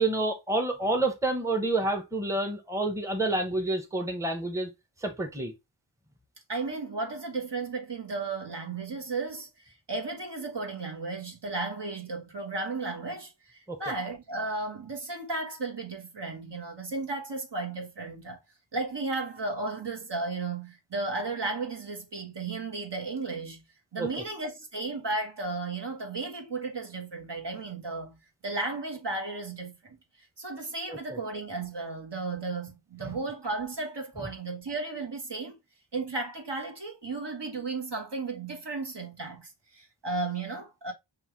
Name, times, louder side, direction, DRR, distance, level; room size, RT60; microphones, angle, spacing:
voice 1, 0.0-4.7 5.0-5.5 13.7-13.8 24.0-24.1 30.9-31.2 33.0-33.1, right 2 dB, 5° right, 0.9 m, -28 dB
voice 2, 6.5-18.4 18.7-23.6 23.9-28.2 28.4-30.0 30.4-35.6 35.9-40.9, right 3 dB, 55° right, 1.3 m, -34 dB
5.5 x 2.3 x 3.1 m
wide cardioid pair, 45°, 48 cm